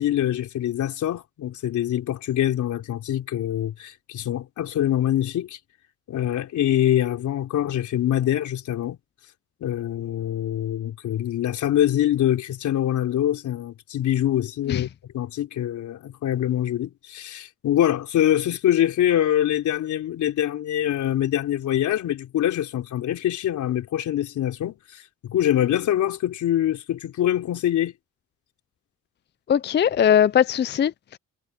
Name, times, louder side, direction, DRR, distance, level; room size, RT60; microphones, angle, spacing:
voice 1, 0.0-5.6 6.1-9.0 9.6-14.9 15.1-27.9, left 11 dB, 75° left, 3.8 m, -24 dB
voice 2, 29.5-31.2, left 9 dB, 35° left, 0.5 m, -20 dB
cardioid pair, 90°, 30 cm